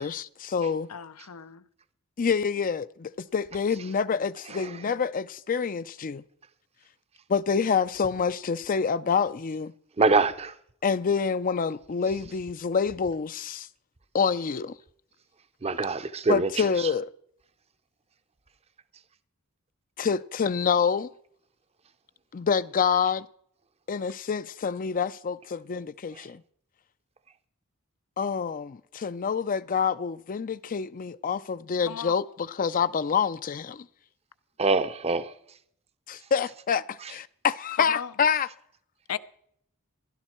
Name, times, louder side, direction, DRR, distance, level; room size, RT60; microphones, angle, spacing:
voice 1, 0.0-0.9 2.2-6.2 7.3-9.7 10.8-13.7 14.1-14.7 16.3-17.1 20.0-21.1 22.3-23.3 23.9-26.4 28.2-33.9 36.1-36.8 37.1-38.5, left 6 dB, 40° left, 0.4 m, -27 dB
voice 2, 0.9-1.6 4.5-5.0 25.7-25.8 31.9-32.2 37.8-38.1 39.1-39.2, left 7 dB, 90° left, 0.7 m, -36 dB
voice 3, 10.0-10.5 15.6-16.5 34.6-35.3, right 3 dB, 30° right, 0.7 m, -23 dB
16.0 x 11.5 x 4.4 m
head